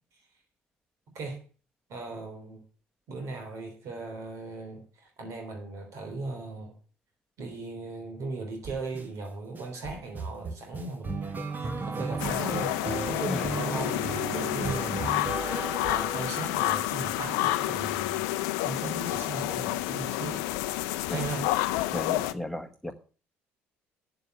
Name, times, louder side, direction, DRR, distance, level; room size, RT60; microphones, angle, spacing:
voice 1, 1.9-2.6 3.1-6.7 7.4-15.2 15.9-18.4 18.6-20.4 21.1-21.5, right 3 dB, 60° right, 3 dB, 3.4 m, -38 dB
sound 1, 8.6-9.0 9.5-16.7, right 3 dB, 35° right, 1.7 m, -35 dB
sound 2, 12.2-22.3, left 16 dB, 80° left, 0.6 m, -29 dB
voice 2, 21.9-22.9, left 1 dB, 5° left, 7 dB, 1.4 m, -34 dB
7.9 x 7.2 x 7.9 m, 0.40 s
supercardioid pair, 70°, 6 cm